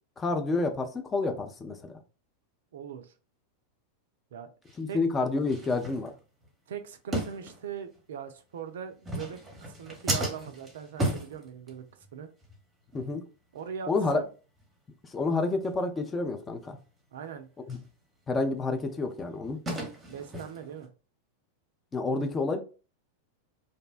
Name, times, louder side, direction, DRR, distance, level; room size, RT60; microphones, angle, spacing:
voice 1, 0.2-2.0 4.8-6.1 12.9-13.2 13.9-14.2 15.0-16.8 17.7-17.8 18.3-19.6 21.9-22.6, left 3 dB, 20° left, 0.4 m, -29 dB
voice 2, 2.7-3.1 4.3-4.5 4.9-5.0 6.7-9.4 9.7-11.8 12.1-12.3 13.5-14.3 17.1-17.5 20.1-20.9, right 8 dB, 60° right, 0.3 m, -40 dB
sound 1, 4.7-4.8 5.4-6.5 7.1-8.0 8.9-12.1 12.4-12.6 12.9-13.1 13.6-13.7 14.0-14.2 14.6-14.7 15.1-15.2 15.6-15.7 17.7-17.9 18.3-20.9, right 1 dB, 15° right, 0.8 m, -35 dB
2.6 x 2.0 x 2.3 m
figure-of-eight pair, 90°, 0 cm